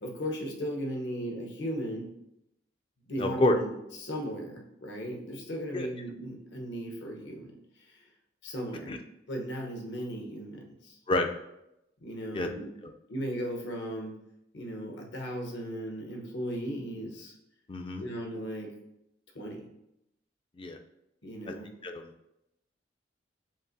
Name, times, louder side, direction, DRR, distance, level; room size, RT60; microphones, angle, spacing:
voice 1, 0.0-2.1 3.1-8.0 8.4-8.9 9.3-11.0 12.0-12.7 13.1-14.1 14.5-17.3 18.0-18.7 19.3-19.6 21.2-21.7, equal, 75° left, 1 dB, 0.9 m, -37 dB
voice 2, 3.2-3.6 5.7-5.9 8.9-9.0 11.1-11.3 12.3-12.5 17.7-18.0 20.6-20.8 21.8-22.1, left 2 dB, 30° left, 5 dB, 0.3 m, -28 dB
7.2 x 2.5 x 2.6 m, 0.84 s
head